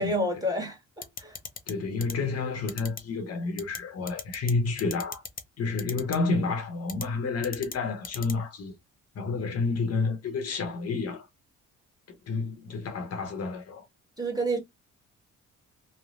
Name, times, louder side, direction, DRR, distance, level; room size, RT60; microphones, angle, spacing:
voice 1, 0.0-1.4 14.2-14.6, right 1 dB, 10° right, 1.4 m, -29 dB
sound 1, 1.0-1.7 2.0-2.1 2.7-3.0 3.6-3.8 4.1-4.5 4.8-5.4 5.8-6.2 6.9-7.0 7.4-7.7 8.0-8.3, left 5 dB, 30° left, 0.6 m, -36 dB
voice 2, 1.7-5.2 5.6-8.8 9.1-11.3 12.1-13.8, left 4 dB, 55° left, 0.9 m, -30 dB
3.2 x 2.1 x 2.5 m
cardioid pair, 90°, 30 cm